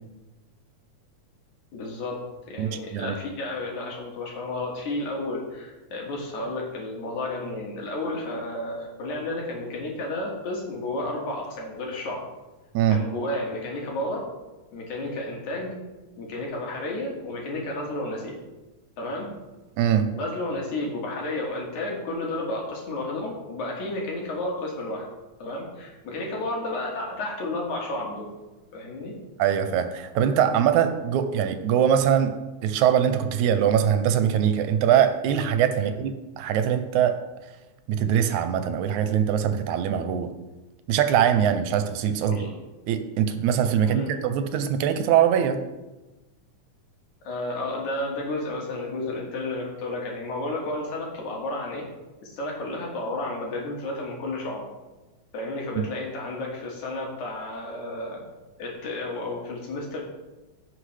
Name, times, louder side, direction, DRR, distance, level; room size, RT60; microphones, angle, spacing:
voice 1, 1.7-2.2 2.5-12.2 12.9-14.2 14.7-15.7 16.2-18.4 19.0-19.3 20.1-25.1 25.4-28.3 28.7-29.2 35.8-35.9 42.2-42.5 43.8-44.2 47.2-51.8 52.2-54.7 55.3-58.2 58.6-60.0, left 2 dB, 75° left, -1 dB, 3.2 m, -32 dB
voice 2, 2.6-3.2 12.7-13.0 19.8-20.1 29.4-32.4 32.6-37.2 37.9-40.3 40.9-42.5 42.9-45.6 55.8-55.9, right 9 dB, 80° right, 9 dB, 2.0 m, -22 dB
16.5 x 5.9 x 3.3 m, 1.1 s
omnidirectional pair, 3.4 m